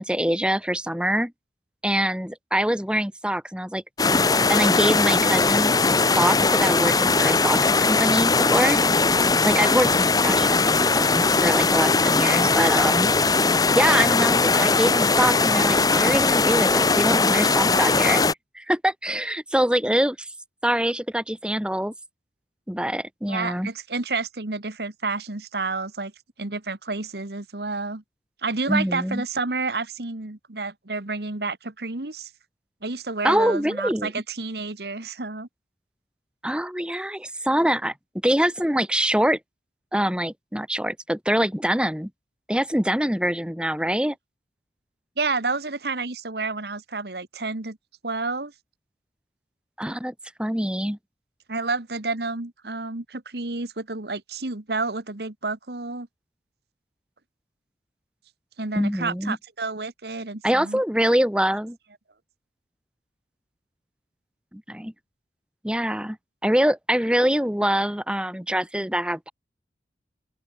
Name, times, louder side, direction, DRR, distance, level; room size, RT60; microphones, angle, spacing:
voice 1, 0.0-1.3 1.8-3.8 4.5-5.7 6.2-7.6 7.9-8.8 9.4-13.1 13.8-18.2 18.6-20.3 20.6-21.9 22.7-23.7 28.7-29.2 33.2-34.1 36.4-37.9 38.2-39.4 39.9-42.1 42.5-44.2 49.8-50.1 50.4-51.0 58.8-59.4 60.4-61.8 64.5-64.9 65.6-66.2 66.4-69.3, equal, 5° right, 1.8 m, -24 dB
sound 1, 4.0-18.3, left 3 dB, 20° left, 1.0 m, -20 dB
voice 2, 9.6-10.2 23.3-26.1 26.4-28.0 28.4-32.3 32.8-35.5 45.2-47.8 48.0-48.5 51.5-56.1 58.6-60.8, right 3 dB, 65° right, 1.6 m, -30 dB
open air
head